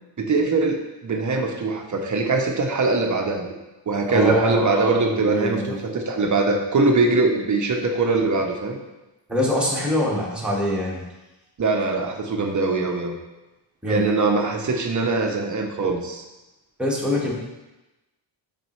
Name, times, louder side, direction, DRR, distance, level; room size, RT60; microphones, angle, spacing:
voice 1, 0.2-3.5 3.9-8.8 11.6-13.2 13.9-16.2, right 3 dB, 40° right, 3 dB, 0.7 m, -22 dB
voice 2, 4.1-4.7 5.1-5.8 9.3-11.0 13.8-14.1 16.8-17.3, left 1 dB, ahead, -5 dB, 1.4 m, -24 dB
8.4 x 4.2 x 3.1 m, 1.0 s
wide cardioid pair, 135°, 45 cm